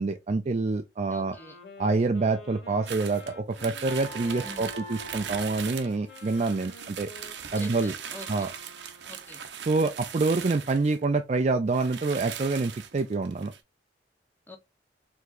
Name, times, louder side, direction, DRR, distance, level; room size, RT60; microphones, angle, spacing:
voice 1, 0.0-1.4 1.8-7.1 7.5-7.9 8.3-8.5 9.6-13.5, right 3 dB, 40° right, 0.4 m, -27 dB
Wind instrument woodwind instrument, 1.1-9.4, left 2 dB, 85° left, 1.9 m, -49 dB
voice 2, 1.1-1.6 4.4-4.7 7.6-8.5 9.0-9.4 14.5-14.6, left 1 dB, 10° left, 0.8 m, -45 dB
sound 1, 2.9-11.0 11.4-11.5 11.7-13.6, right 8 dB, 80° right, 0.7 m, -40 dB
sound 2, 3.8-6.5, right 2 dB, 40° left, 1.6 m, -45 dB
4.7 x 3.6 x 2.6 m
head